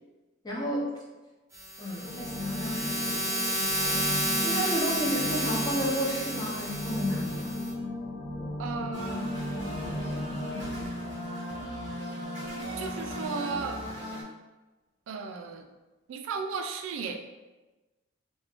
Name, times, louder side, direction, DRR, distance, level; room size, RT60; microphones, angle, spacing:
voice 1, 0.4-0.9 1.8-3.4 4.4-7.5, equal, 20° left, -5 dB, 0.5 m, -32 dB
sound 1, 1.5-7.7, right 1 dB, 15° right, 0.8 m, -31 dB
sound 2, 2.0-10.8, left 1 dB, 80° left, 0.5 m, -36 dB
voice 2, 8.6-9.3 12.8-13.8 15.1-15.6 16.1-17.2, right 5 dB, 85° right, 5 dB, 0.3 m, -35 dB
sound 3, 8.9-14.2, equal, 65° left, 0.9 m, -36 dB
2.4 x 2.1 x 3.5 m, 1.1 s
head